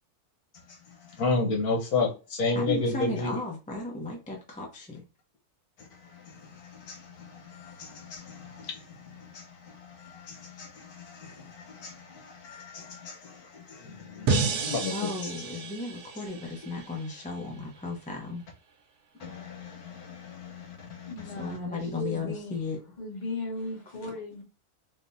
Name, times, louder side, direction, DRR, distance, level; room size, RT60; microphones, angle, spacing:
voice 1, 0.9-3.4 5.8-15.3 19.2-21.5, left 3 dB, 80° left, 1.4 m, -33 dB
voice 2, 2.5-5.0 14.9-18.4 21.4-22.8, left 3 dB, 10° left, 0.4 m, -35 dB
sound 1, 14.3-17.4, right 4 dB, 85° right, 1.2 m, -31 dB
voice 3, 21.1-22.6 23.0-24.4, left 2 dB, 30° left, 1.2 m, -37 dB
3.5 x 2.8 x 2.6 m
omnidirectional pair, 1.6 m